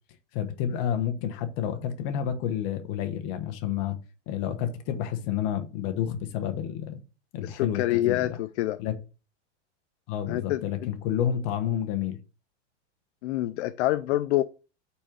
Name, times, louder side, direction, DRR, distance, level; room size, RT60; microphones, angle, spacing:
voice 1, 0.3-4.0 4.3-7.0 7.3-8.2 8.8-8.9 10.1-12.2, left 9 dB, 50° left, 1.2 m, -29 dB
voice 2, 7.4-8.8 10.3-10.9 13.2-14.4, left 15 dB, 65° left, 0.5 m, -27 dB
4.4 x 4.3 x 5.1 m
hypercardioid pair, 125°, 36 cm